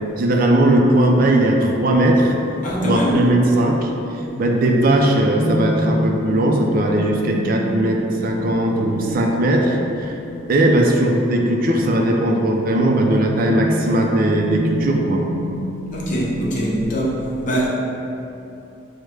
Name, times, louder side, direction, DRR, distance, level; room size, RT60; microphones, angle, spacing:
voice 1, 0.2-2.3 2.8-3.9 4.4-10.1 10.5-15.2, right 1 dB, 45° right, 1 dB, 0.4 m, -18 dB
voice 2, 2.6-3.3 15.9-17.1 17.4-17.7, equal, 40° left, -5 dB, 0.8 m, -22 dB
sound 1, 4.2-16.8, equal, 70° left, 0.9 m, -28 dB
6.1 x 2.1 x 3.2 m, 2.8 s
head